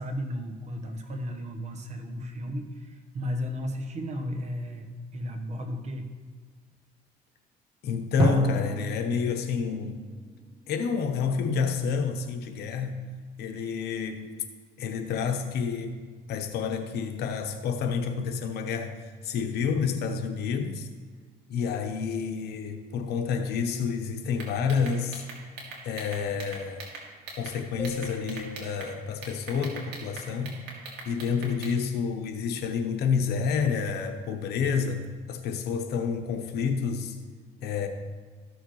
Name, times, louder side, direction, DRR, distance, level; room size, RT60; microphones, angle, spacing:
voice 1, 0.0-6.1, equal, 45° right, 5 dB, 1.2 m, -34 dB
voice 2, 7.8-10.0 10.7-13.0 13.4-14.4 14.8-16.0 16.3-18.9 19.2-20.9 21.5-25.2 25.8-26.8 27.4-30.6 31.0-35.0 35.3-37.2 37.6-37.9, left 6 dB, 75° left, 6 dB, 1.0 m, -29 dB
Drum, 8.2-10.9, right 3 dB, 25° right, 0.5 m, -31 dB
sound 1, 24.4-27.5 27.8-28.9 29.2-31.7, right 4 dB, 85° right, 2.2 m, -41 dB
sound 2, 27.8-30.4, left 1 dB, 10° left, 1.1 m, -43 dB
14.0 x 6.5 x 3.2 m, 1.5 s
cardioid pair, 110°, 17 cm